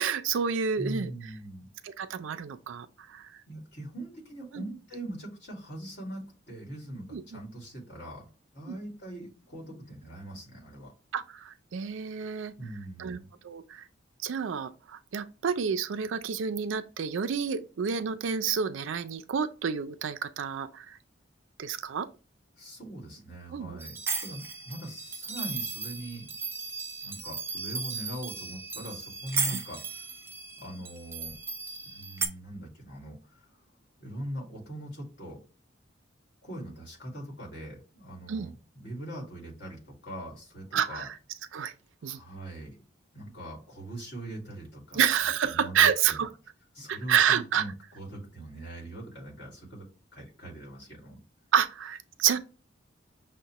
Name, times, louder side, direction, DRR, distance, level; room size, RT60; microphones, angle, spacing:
voice 1, 0.0-1.1 1.8-3.3 4.5-4.6 7.1-7.2 8.7-8.8 11.1-12.5 13.0-13.2 13.4-13.8 14.2-21.0 21.6-22.1 23.5-23.8 29.5-29.6 38.3-38.5 40.7-41.1 41.5-41.7 42.0-42.2 44.9-46.3 46.9-47.6 51.5-52.4, right 7 dB, 80° right, 0.4 m, -29 dB
voice 2, 0.8-1.7 3.5-8.3 8.5-10.9 12.6-13.3 22.6-26.3 27.0-30.2 30.6-31.4 31.9-33.6 34.0-35.4 36.4-38.6 38.8-41.1 42.0-42.8 43.1-45.0 45.5-46.3 46.7-49.9 50.1-51.2, right 1 dB, 60° left, 1.8 m, -41 dB
sound 1, 23.8-32.3, right 5 dB, 10° right, 0.4 m, -36 dB
6.3 x 2.1 x 2.9 m
head